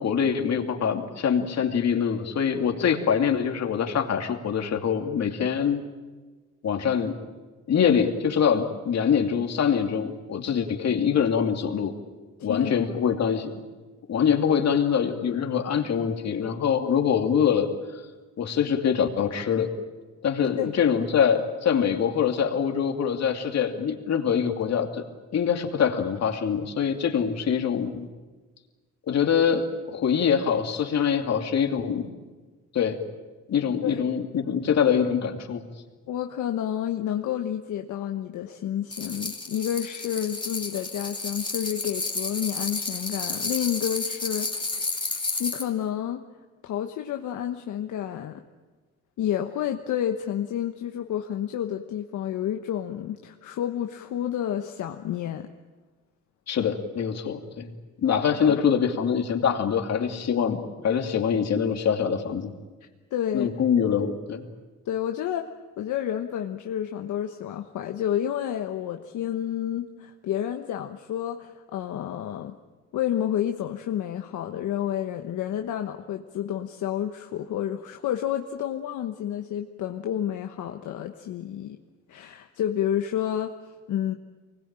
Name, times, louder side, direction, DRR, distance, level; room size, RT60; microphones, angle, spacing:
voice 1, 0.0-5.8 6.6-7.2 7.7-11.9 12.4-13.5 14.1-17.7 18.4-19.7 20.2-25.0 25.3-28.1 29.1-32.1 32.7-33.0 33.5-35.6 56.5-57.7 58.0-62.5 63.3-64.5, left 7 dB, 60° left, 4 dB, 2.8 m, -24 dB
voice 2, 12.4-13.0 20.6-20.7 33.8-34.1 36.1-45.1 45.4-46.2 46.6-48.4 49.2-55.5 58.4-58.6 63.1-63.5 64.9-65.5 65.8-72.5 72.9-81.8 82.1-84.1, left 10 dB, 75° left, 5 dB, 1.2 m, -30 dB
sound 1, 38.9-45.7, left 3 dB, 15° left, 2.6 m, -31 dB
24.0 x 20.5 x 9.0 m, 1.3 s
cardioid pair, 90°, 30 cm